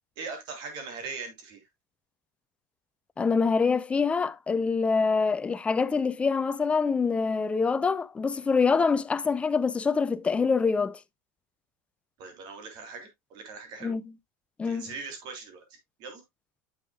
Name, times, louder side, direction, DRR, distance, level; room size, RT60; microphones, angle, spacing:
voice 1, 0.2-1.6 12.2-14.0 14.6-16.2, right 4 dB, 50° right, 3.2 m, -40 dB
voice 2, 3.2-11.0 13.8-14.0 14.6-14.9, left 5 dB, 10° left, 0.4 m, -25 dB
9.6 x 7.0 x 2.3 m
supercardioid pair, 145°, 10 cm